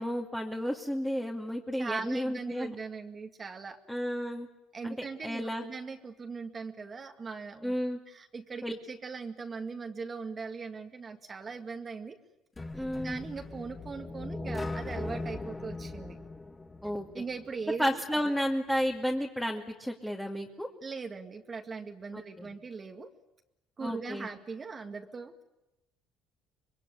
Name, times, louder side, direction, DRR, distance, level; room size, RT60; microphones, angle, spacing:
voice 1, 0.0-2.7 3.9-4.5 4.8-5.0 5.2-5.6 7.6-8.0 8.6-8.7 12.7-13.2 16.8-17.2 17.8-20.7 22.1-22.5 23.8-24.3, equal, 5° left, 0 dB, 2.4 m, -32 dB
voice 2, 1.8-3.8 4.7-7.8 8.1-12.2 13.0-16.2 17.1-18.3 20.8-23.1 23.8-25.4, right 4 dB, 30° right, 4 dB, 2.0 m, -40 dB
sound 1, 12.6-17.5, left 2 dB, 20° left, 2.1 m, -39 dB
25.5 x 21.5 x 9.9 m, 0.95 s
supercardioid pair, 85°, 0 cm